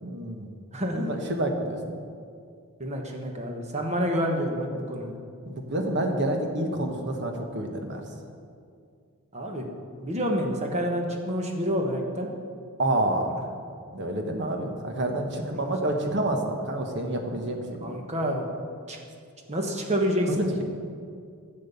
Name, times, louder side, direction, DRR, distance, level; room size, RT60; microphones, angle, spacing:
voice 1, 0.0-0.5 0.9-1.8 5.5-8.0 12.8-13.3 13.9-17.9 20.4-20.6, right 1 dB, 50° right, 3 dB, 1.3 m, -28 dB
voice 2, 0.7-1.1 2.8-5.1 9.3-9.7 10.0-12.3 13.3-13.4 17.8-18.5 18.9-19.0 19.5-20.6, equal, 30° right, 2 dB, 1.4 m, -28 dB
10.5 x 7.6 x 7.0 m, 2.3 s
head